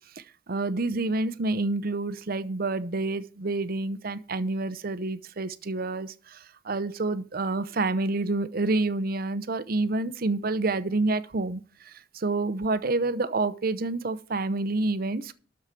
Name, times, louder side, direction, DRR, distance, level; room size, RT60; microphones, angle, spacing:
voice 1, 0.5-6.1 6.7-11.6 12.2-15.3, right 2 dB, 55° right, 0.8 m, -28 dB
12.5 x 4.8 x 7.4 m
head